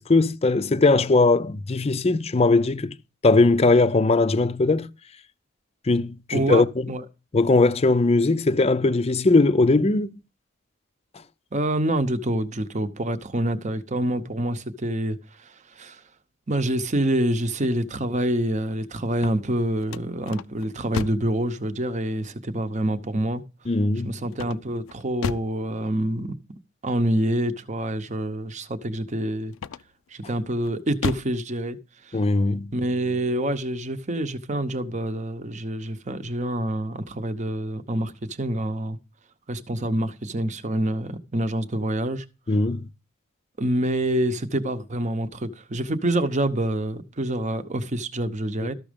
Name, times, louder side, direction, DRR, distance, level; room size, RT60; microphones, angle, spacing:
voice 1, 0.0-2.9 3.2-4.9 5.9-6.9 7.3-10.1 23.7-24.1 32.1-32.7 42.5-42.9 48.6-48.7, left 3 dB, 30° left, 0.5 m, -20 dB
voice 2, 6.3-7.0 11.5-16.0 16.5-23.4 24.0-26.3 26.8-29.5 30.1-31.8 32.0-32.2 32.7-39.0 39.5-42.6 43.6-48.7, right 1 dB, 35° right, 0.8 m, -26 dB
sound 1, 19.1-21.4 24.3-25.6 29.5-30.1 30.6-31.4, left 5 dB, 80° left, 0.4 m, -33 dB
13.5 x 6.2 x 5.1 m
head